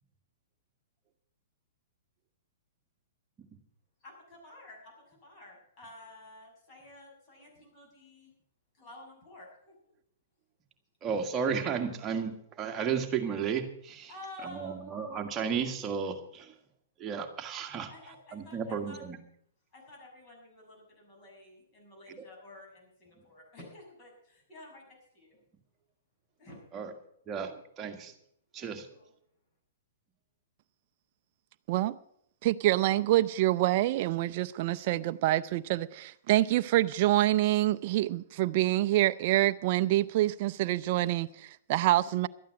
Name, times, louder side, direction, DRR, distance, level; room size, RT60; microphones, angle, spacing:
voice 1, 4.0-8.3 8.7-9.8 14.1-14.9 17.9-19.0 19.7-25.4 26.4-26.6 28.6-29.1, left 1 dB, 30° left, 0 dB, 6.7 m, -51 dB
voice 2, 11.0-14.1 14.4-16.5 17.0-17.9 18.3-19.2 26.7-26.9 27.3-28.1 28.5-28.9, right 6 dB, 20° right, 4 dB, 1.6 m, -33 dB
voice 3, 32.4-42.3, right 15 dB, 45° right, 11 dB, 0.5 m, -26 dB
12.5 x 9.2 x 7.5 m, 0.68 s
hypercardioid pair, 140°, 0 cm